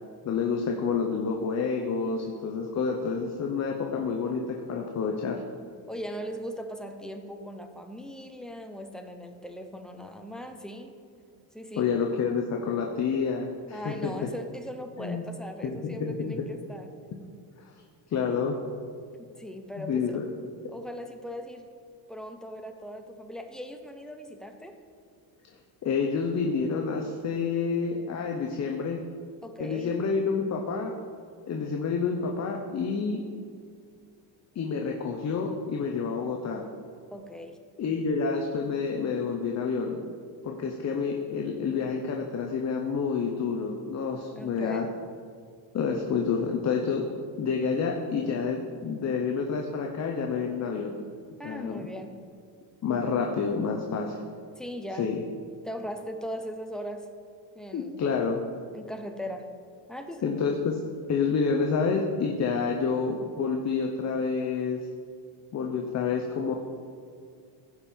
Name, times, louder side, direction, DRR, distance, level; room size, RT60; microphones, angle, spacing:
voice 1, 0.2-5.4 11.8-14.3 15.0-15.2 15.6-16.4 18.1-18.6 19.8-20.2 25.8-29.0 29.6-31.0 31.5-33.2 34.5-36.7 37.8-40.1 40.4-44.9 45.7-47.1 47.4-51.0 51.4-51.9 52.8-54.2 55.0-55.2 57.7-58.4 60.2-60.8 61.1-64.9 65.5-66.6, left 5 dB, 35° left, 2 dB, 0.8 m, -28 dB
voice 2, 5.9-11.0 11.5-11.9 13.7-16.9 19.2-20.2 20.7-21.7 22.1-24.8 29.4-29.9 37.1-37.6 44.3-44.9 51.4-52.2 53.0-53.2 54.6-55.2 55.6-57.1 57.5-58.0 58.7-59.5 59.9-60.4, equal, ahead, 5 dB, 0.6 m, -39 dB
16.0 x 5.4 x 4.4 m, 2.2 s
cardioid pair, 135°, 47 cm